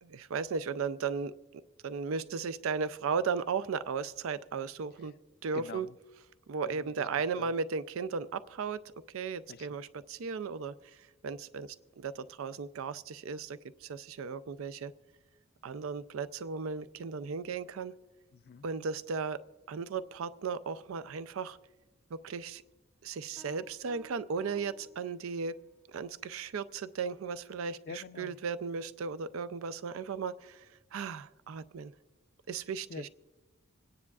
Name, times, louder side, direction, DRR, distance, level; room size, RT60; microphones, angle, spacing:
voice 1, 0.0-5.1 5.4-5.9 6.5-10.7 11.2-11.7 12.0-14.9 15.6-17.9 18.6-19.4 19.7-21.6 22.2-22.6 23.0-25.5 25.9-31.9 32.5-33.1, right 5 dB, 75° right, 0.4 m, -36 dB
voice 2, 5.5-6.0 6.7-7.1 7.3-7.5 9.5-9.7 18.3-18.7 27.9-28.4 32.9-33.1, left 5 dB, 50° left, 0.4 m, -45 dB
Piano, 23.4-25.7, equal, ahead, 0.6 m, -58 dB
26.5 x 9.8 x 2.3 m
head